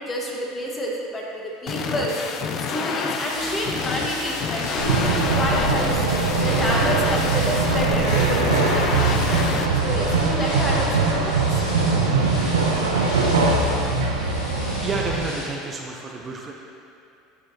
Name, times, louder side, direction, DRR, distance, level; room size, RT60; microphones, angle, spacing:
voice 1, 0.1-2.1 2.6-6.0 6.4-9.1 9.8-11.4 13.2-13.3, equal, 25° left, -2 dB, 1.4 m, -29 dB
sound 1, 1.7-9.7, left 6 dB, 45° left, 0.5 m, -28 dB
sound 2, 3.3-15.5, equal, 65° left, 1.6 m, -34 dB
sound 3, 4.8-15.2, right 3 dB, 85° right, 0.7 m, -22 dB
voice 2, 14.8-16.5, right 3 dB, 30° right, 0 dB, 0.6 m, -30 dB
11.0 x 5.0 x 2.8 m, 2.5 s
hypercardioid pair, 75°, 0 cm